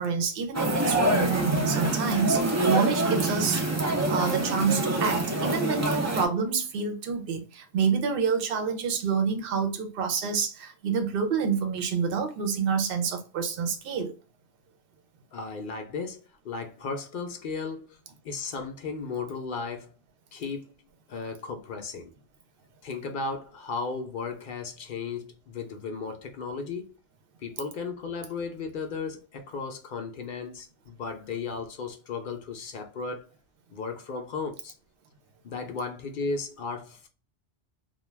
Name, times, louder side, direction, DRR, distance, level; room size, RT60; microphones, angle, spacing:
voice 1, 0.0-3.6 4.1-14.1, right 6 dB, 65° right, 0.8 m, -28 dB
sound 1, 0.5-6.3, right 2 dB, 30° right, 0.3 m, -26 dB
voice 2, 15.3-18.0 18.2-19.9 20.3-20.7 21.1-22.1 22.8-26.9 27.4-33.3 33.7-34.7 35.4-37.1, left 4 dB, 60° left, 0.6 m, -35 dB
2.3 x 2.2 x 3.1 m
omnidirectional pair, 1.1 m